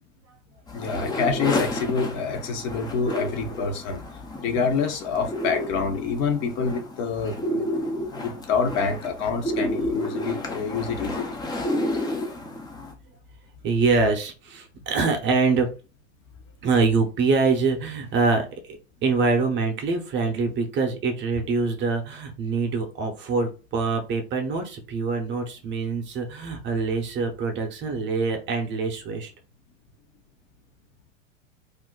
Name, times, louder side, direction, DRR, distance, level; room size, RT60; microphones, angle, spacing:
voice 1, 0.7-4.0 4.4-7.7 8.1-11.3, left 5 dB, 45° left, 0.8 m, -27 dB
sound 1, 0.7-12.9, left 1 dB, 10° left, 0.4 m, -31 dB
voice 2, 13.6-15.7 16.6-29.3, right 4 dB, 30° right, 0.7 m, -24 dB
2.5 x 2.1 x 3.7 m
hypercardioid pair, 105°, 38 cm